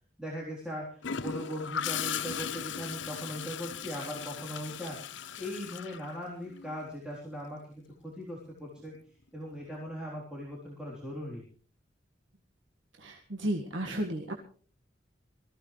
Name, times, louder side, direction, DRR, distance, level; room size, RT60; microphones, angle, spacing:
voice 1, 0.2-5.0 5.4-8.9 9.3-11.4, equal, 5° right, -5 dB, 3.7 m, -39 dB
Gurgling / Toilet flush, 1.0-6.8 8.8-9.0, left 8 dB, 80° left, 0.7 m, -37 dB
voice 2, 13.0-14.3, right 1 dB, 90° right, 2 dB, 1.8 m, -33 dB
23.0 x 15.5 x 3.3 m, 0.41 s
head